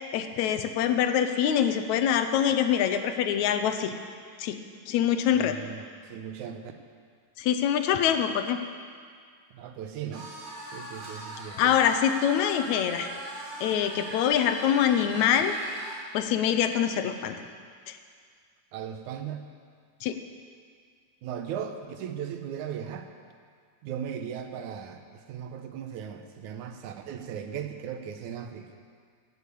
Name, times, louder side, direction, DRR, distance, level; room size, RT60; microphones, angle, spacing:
voice 1, 0.1-3.9 4.4-4.6 4.9-5.6 7.4-8.6 11.6-13.1 13.6-15.5 16.1-17.4 17.9-18.0 20.0-20.2, left 9 dB, 80° left, 8 dB, 2.0 m, -24 dB
voice 2, 5.3-6.8 9.5-10.3 10.7-11.8 18.7-19.4 21.2-23.1 23.8-28.7, right 8 dB, 85° right, 6 dB, 2.3 m, -37 dB
sound 1, 10.1-16.0, right 1 dB, 70° right, 4.2 m, -41 dB
15.5 x 7.1 x 8.3 m, 2.1 s
omnidirectional pair, 3.3 m